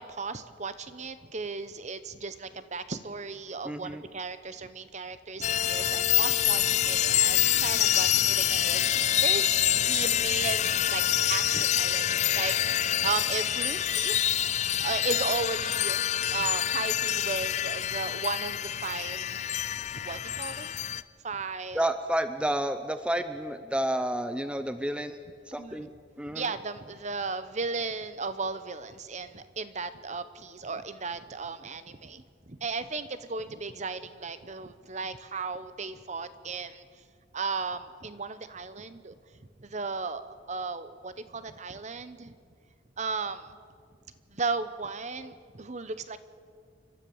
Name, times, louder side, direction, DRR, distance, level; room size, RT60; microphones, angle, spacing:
voice 1, 0.0-11.0 11.3-12.1 12.3-14.2 14.4-16.0 16.3-19.4 19.9-20.8 21.2-21.9 25.6-25.8 26.3-36.8 37.3-39.1 39.6-42.3 43.0-43.6 44.3-46.2, right 4 dB, 40° right, 12 dB, 0.9 m, -35 dB
voice 2, 3.6-4.0 21.7-25.2 25.5-25.9 26.2-26.4, right 1 dB, 5° right, 10 dB, 0.6 m, -30 dB
sound 1, 5.4-21.0, left 11 dB, 35° left, 0.4 m, -26 dB
29.5 x 13.0 x 7.2 m, 2.1 s
head